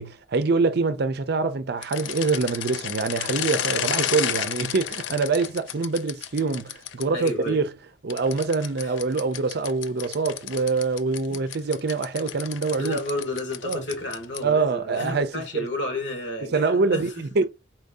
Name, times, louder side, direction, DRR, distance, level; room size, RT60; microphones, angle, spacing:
voice 1, 0.0-7.7 8.0-13.0 13.6-13.8 14.4-15.7 16.4-17.4, right 4 dB, 60° right, 0.5 m, -25 dB
sound 1, 1.8-7.3 8.1-14.6, left 10 dB, 85° left, 0.4 m, -32 dB
voice 2, 7.1-7.6 8.8-9.0 11.3-11.5 12.8-17.4, left 2 dB, 70° left, 1.5 m, -32 dB
4.5 x 2.6 x 3.5 m
head